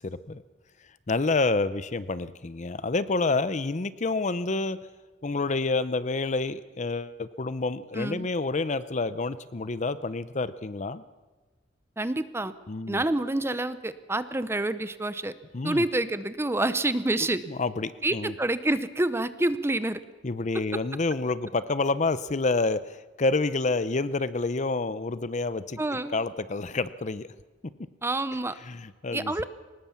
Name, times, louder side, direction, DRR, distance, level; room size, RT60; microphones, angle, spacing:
voice 1, 0.0-0.4 1.1-4.8 5.2-11.0 12.7-13.0 15.5-15.8 17.5-18.3 20.2-25.8 26.1-27.3 28.7-29.4, left 3 dB, 40° left, 15 dB, 0.6 m, -28 dB
voice 2, 7.9-8.3 12.0-12.5 12.9-15.3 15.6-17.4 18.0-20.0 25.8-26.2 28.0-28.6 29.1-29.4, right 2 dB, 15° right, 13 dB, 0.7 m, -27 dB
23.5 x 19.5 x 7.1 m, 1.3 s
head